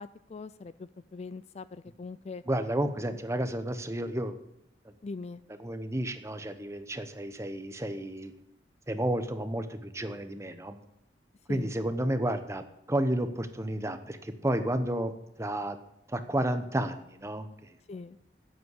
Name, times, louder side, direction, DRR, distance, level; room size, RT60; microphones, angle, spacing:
voice 1, 0.0-2.4 5.0-5.4 11.5-11.7 17.9-18.2, left 4 dB, 40° left, 15 dB, 0.4 m, -42 dB
voice 2, 2.5-4.4 5.6-8.3 8.9-10.8 11.5-15.1 15.4-15.8 16.1-17.5, right 1 dB, 15° right, 9 dB, 0.9 m, -31 dB
9.7 x 8.1 x 8.2 m, 0.79 s
head